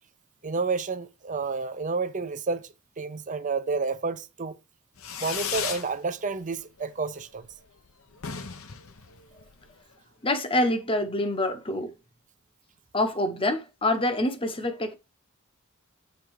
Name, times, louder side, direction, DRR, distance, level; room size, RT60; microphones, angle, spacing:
voice 1, 0.4-2.7 3.0-4.6 5.2-7.5, right 4 dB, 35° right, 0.6 m, -30 dB
Fireworks, 5.0-5.9 6.3-6.8 7.1-7.2 7.4-7.5 7.8-7.9 8.1-9.8, left 7 dB, 65° left, 0.9 m, -35 dB
voice 2, 10.2-11.9 12.9-14.9, left 1 dB, 25° left, 1.0 m, -26 dB
8.2 x 3.7 x 4.7 m
head